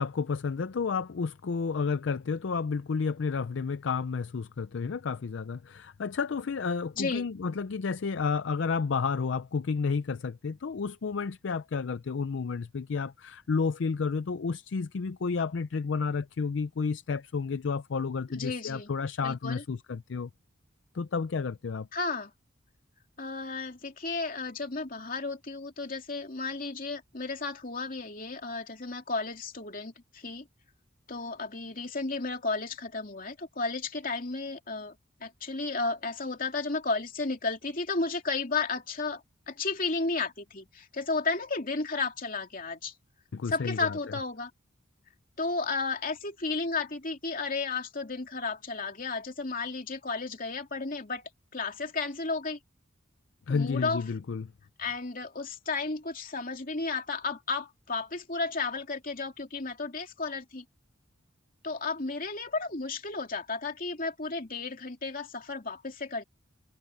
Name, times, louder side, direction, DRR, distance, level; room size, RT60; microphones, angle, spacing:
voice 1, 0.0-20.3 20.9-21.9 43.3-44.0 53.5-54.5, left 5 dB, 65° left, 0.5 m, -31 dB
voice 2, 7.0-7.3 18.3-18.9 19.2-19.6 21.9-22.3 23.2-30.5 31.1-34.9 35.2-42.9 43.5-44.5 45.4-52.6 53.5-54.0 54.8-60.6 61.6-66.2, left 3 dB, 45° left, 2.9 m, -33 dB
head